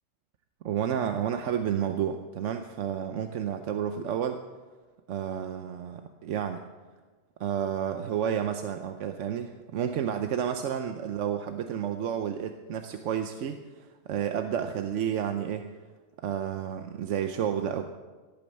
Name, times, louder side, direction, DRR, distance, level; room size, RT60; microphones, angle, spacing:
voice 1, 0.6-4.4 5.1-6.6 7.4-15.7 16.2-17.9, right 9 dB, 80° right, 7 dB, 1.0 m, -31 dB
16.5 x 8.8 x 6.4 m, 1.4 s
omnidirectional pair, 1.2 m